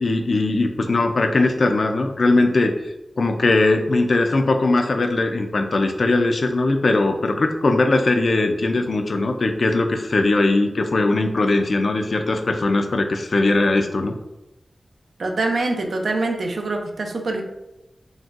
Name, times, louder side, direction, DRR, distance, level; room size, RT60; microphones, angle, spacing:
voice 1, 0.0-2.7 3.2-14.2, left 2 dB, 65° left, 5 dB, 0.3 m, -20 dB
voice 2, 15.2-17.4, right 2 dB, 80° right, 2 dB, 0.4 m, -24 dB
3.8 x 2.2 x 2.4 m, 0.93 s
wide cardioid pair, 75°, 0 cm